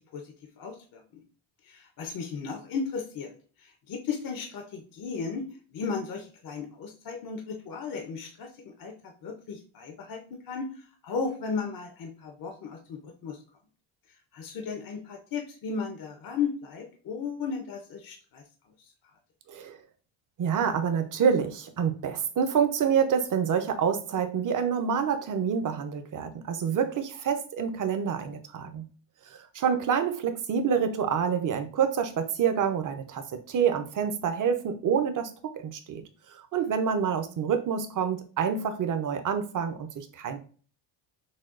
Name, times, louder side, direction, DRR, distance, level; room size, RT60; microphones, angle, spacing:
voice 1, 0.1-1.2 1.6-5.4 5.7-10.7 11.0-13.4 14.3-18.4, left 5 dB, 45° left, 4 dB, 0.6 m, -35 dB
voice 2, 19.5-19.8 20.4-28.8 29.2-36.0 36.3-40.4, right 7 dB, 40° right, 7 dB, 0.6 m, -27 dB
6.2 x 2.2 x 2.4 m, 0.41 s
cardioid pair, 130°, 49 cm